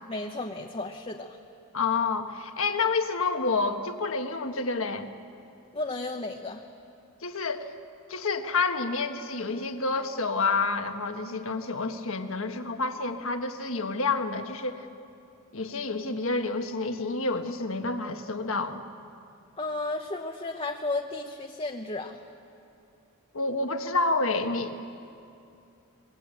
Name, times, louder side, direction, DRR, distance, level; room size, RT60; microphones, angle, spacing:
voice 1, 0.1-1.4 5.7-6.6 19.6-22.2, left 2 dB, 25° left, 2 dB, 0.9 m, -33 dB
voice 2, 1.7-5.1 7.2-7.7 8.1-14.9 15.5-18.8 23.3-24.9, left 3 dB, 65° left, 6 dB, 1.4 m, -29 dB
23.5 x 21.5 x 9.1 m, 2.6 s
head